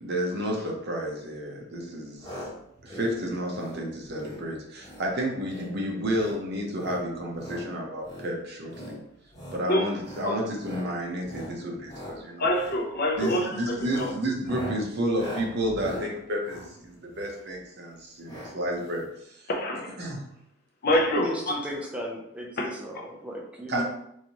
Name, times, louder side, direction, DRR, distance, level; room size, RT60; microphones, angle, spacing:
voice 1, 0.0-2.3 2.8-9.0 9.5-12.5 13.2-19.5 20.0-20.3 23.7-23.8, equal, 50° right, 0 dB, 0.7 m, -31 dB
sound 1, 2.2-2.5 2.8-3.1 3.5-3.8 4.1-4.4 4.8-5.1 5.4-5.7 6.0-6.4 6.7-7.6 8.0-8.3 8.7-9.0 9.3-9.6 10.0-10.3 10.6-10.9 11.2-11.5 11.8-12.1 12.5-12.8 13.2-13.4 13.8-17.5 18.3-18.5 18.8-18.9 19.1-19.2, equal, 20° left, 1.2 m, -40 dB
voice 2, 12.4-14.1 19.5-19.9 20.8-21.6 22.6-22.7, left 1 dB, 50° left, 2 dB, 0.5 m, -26 dB
voice 3, 20.9-23.8, equal, 5° right, -2 dB, 0.4 m, -36 dB
3.2 x 2.6 x 2.8 m, 0.74 s
head